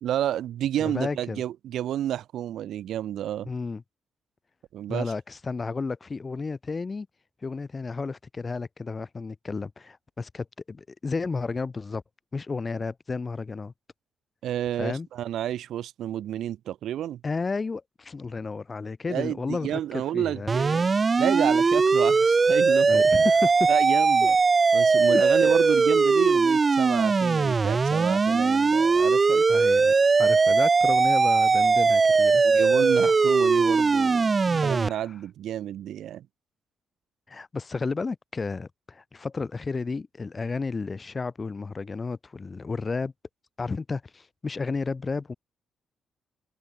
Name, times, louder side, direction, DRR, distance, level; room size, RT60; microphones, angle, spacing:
voice 1, 0.0-3.5 4.7-5.1 14.4-17.2 19.1-20.9 21.2-23.0 23.7-24.4 24.7-29.4 32.4-36.3, right 11 dB, 70° right, 2.5 m, -30 dB
voice 2, 0.8-1.4 3.4-3.8 4.9-7.1 7.4-12.0 12.3-13.7 14.8-15.1 17.2-20.5 22.9-23.7 24.2-24.3 25.1-25.5 29.5-32.7 34.5-35.0 37.3-43.1 43.6-45.3, left 4 dB, 25° left, 1.7 m, -32 dB
sound 1, 20.5-34.9, right 4 dB, 25° right, 0.5 m, -20 dB
cardioid pair, 160°, 0 cm